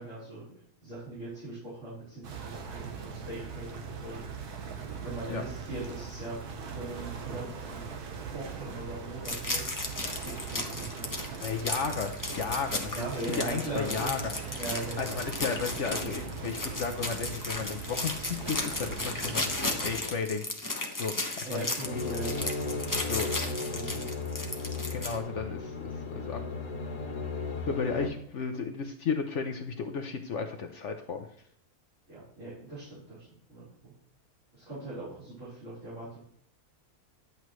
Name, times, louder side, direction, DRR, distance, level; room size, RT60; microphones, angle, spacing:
voice 1, 0.0-4.7 5.0-8.0 8.3-11.6 12.9-14.2 14.5-15.1 21.4-24.1 32.1-33.9 34.5-36.2, right 2 dB, 50° right, -11 dB, 4.6 m, -41 dB
sound 1, 2.2-20.0, right 6 dB, 85° right, 1.6 m, -40 dB
sound 2, 9.2-25.2, left 2 dB, 15° left, 0.8 m, -35 dB
voice 2, 11.4-13.1 13.4-14.2 15.0-20.4 20.9-21.9 23.1-23.3 23.7-23.8 24.9-26.4 27.7-31.2, left 5 dB, 60° left, 5 dB, 0.9 m, -34 dB
sound 3, 21.8-28.1, left 3 dB, 85° left, 1.8 m, -35 dB
10.5 x 8.1 x 3.1 m, 0.66 s
omnidirectional pair, 1.6 m